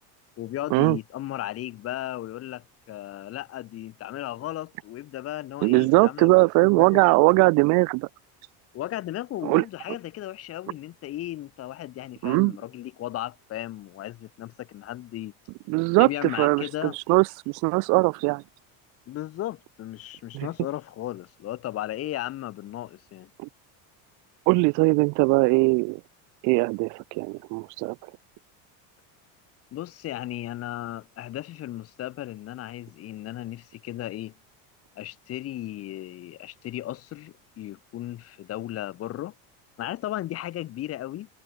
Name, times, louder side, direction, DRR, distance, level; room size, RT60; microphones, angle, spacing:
voice 1, 0.4-7.0 8.7-15.3 16.0-17.0 19.1-23.3 29.7-34.3 35.0-39.3 39.8-41.3, left 14 dB, 35° left, 3.2 m, -35 dB
voice 2, 5.6-8.1 9.4-9.6 12.2-12.5 15.7-18.4 20.3-20.5 23.4-23.5 24.5-26.0 26.4-28.0, right 28 dB, 50° right, 0.6 m, -21 dB
cardioid pair, 170°, 39 cm